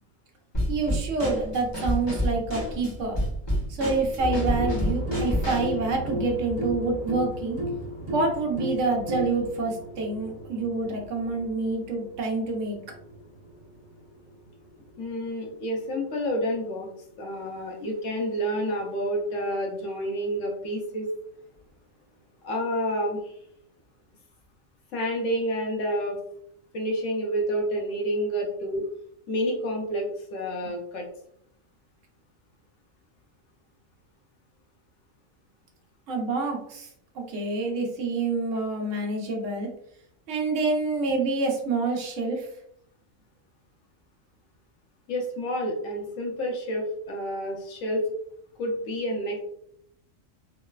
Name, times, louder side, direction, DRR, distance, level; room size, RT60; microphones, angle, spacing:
Drum kit / Snare drum, 0.5-5.8, equal, 25° left, 0.7 m, -29 dB
voice 1, 0.7-3.2 3.7-7.6 8.1-12.8 36.1-36.9 37.1-39.7 40.3-42.5, right 3 dB, 70° right, 1 dB, 1.0 m, -27 dB
sound 1, 4.2-16.0 17.4-17.5, equal, 45° right, 0.3 m, -34 dB
voice 2, 15.0-16.9 17.2-21.1 22.4-23.3 24.9-26.2 26.7-28.9 29.3-31.1 45.1-48.0 48.6-49.4, equal, 75° left, 0 dB, 1.0 m, -29 dB
3.1 x 2.0 x 2.2 m, 0.69 s
omnidirectional pair, 1.3 m